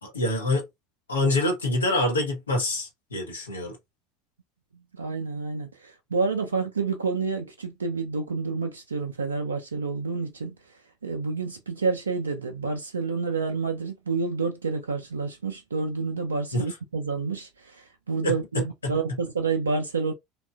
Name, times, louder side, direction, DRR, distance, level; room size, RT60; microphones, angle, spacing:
voice 1, 0.0-0.6 1.1-3.8 16.5-16.6 18.2-18.3 18.8-18.9, left 2 dB, 80° left, 0.8 m, -26 dB
voice 2, 4.9-10.6 11.0-20.1, right 4 dB, 80° right, 0.3 m, -29 dB
2.9 x 2.3 x 2.3 m
figure-of-eight pair, 70°, 0 cm